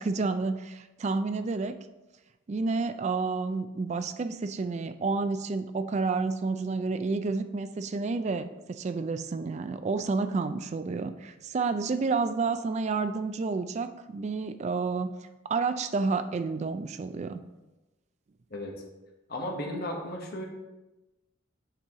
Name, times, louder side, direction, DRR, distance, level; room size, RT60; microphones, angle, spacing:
voice 1, 0.0-1.8 2.5-15.1 15.4-17.4, right 4 dB, 35° right, 10 dB, 0.3 m, -30 dB
voice 2, 18.5-18.8 19.3-20.5, left 1 dB, 50° left, 1 dB, 1.1 m, -35 dB
6.6 x 4.6 x 3.6 m, 1.1 s
head